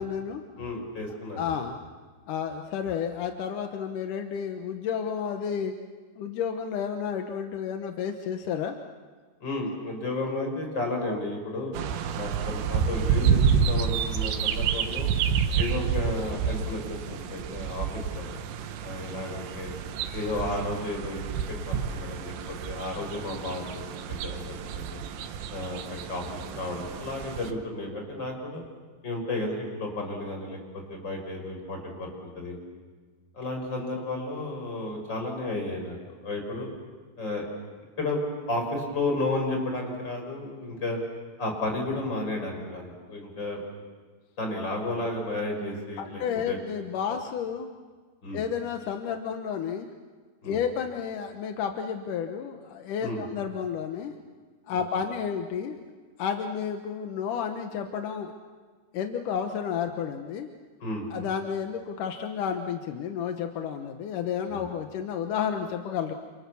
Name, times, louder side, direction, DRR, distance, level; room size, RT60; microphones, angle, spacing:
voice 1, 0.0-0.4 1.4-1.8 2.3-5.7 6.2-8.8 46.0-47.7 48.3-49.9 50.4-54.1 54.7-55.8 56.2-58.3 58.9-60.5 61.1-66.1, left 7 dB, 70° left, 5 dB, 2.1 m, -31 dB
voice 2, 0.6-1.5 9.4-11.7 12.1-15.1 15.5-18.3 18.8-19.7 20.1-25.0 25.5-28.6 29.0-32.6 33.3-36.7 37.2-37.4 38.0-38.2 38.5-41.0 41.4-43.6 44.4-46.2 46.5-46.6 48.2-48.4 50.4-50.6 53.0-53.3 60.8-61.3 64.5-64.6, left 2 dB, 25° left, 2 dB, 5.7 m, -33 dB
sound 1, 11.7-27.5, right 7 dB, 85° right, 3.6 m, -29 dB
29.0 x 28.5 x 7.1 m, 1.5 s
omnidirectional pair, 5.1 m